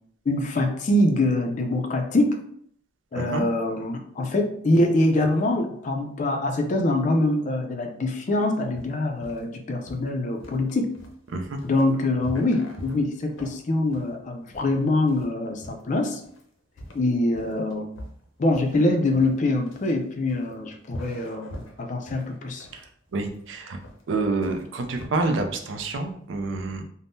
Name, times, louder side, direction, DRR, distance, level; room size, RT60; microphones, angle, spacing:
voice 1, 0.3-2.4 3.1-10.9 11.6-16.2 16.9-17.9 18.4-22.7, left 2 dB, 40° left, 4 dB, 0.4 m, -24 dB
voice 2, 3.1-3.4 11.3-11.6 22.7-22.8 23.1-23.8 24.1-26.8, right 3 dB, 70° right, 5 dB, 0.4 m, -28 dB
sound 1, 8.7-25.1, left 1 dB, 80° left, 0.6 m, -44 dB
3.4 x 2.0 x 2.6 m, 0.66 s
head